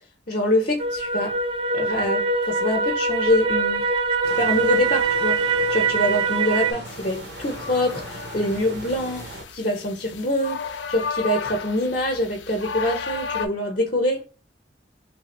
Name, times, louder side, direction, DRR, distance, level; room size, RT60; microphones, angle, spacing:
voice 1, 0.3-1.4 1.7-3.9 4.3-14.2, left 1 dB, 45° left, 0.8 m, -25 dB
sound 1, 0.8-6.7, right 4 dB, 30° right, 0.4 m, -23 dB
sound 2, 4.2-9.5, right 2 dB, 65° right, 0.7 m, -39 dB
sound 3, 6.8-13.5, left 6 dB, 80° left, 0.5 m, -34 dB
3.5 x 2.5 x 2.9 m
head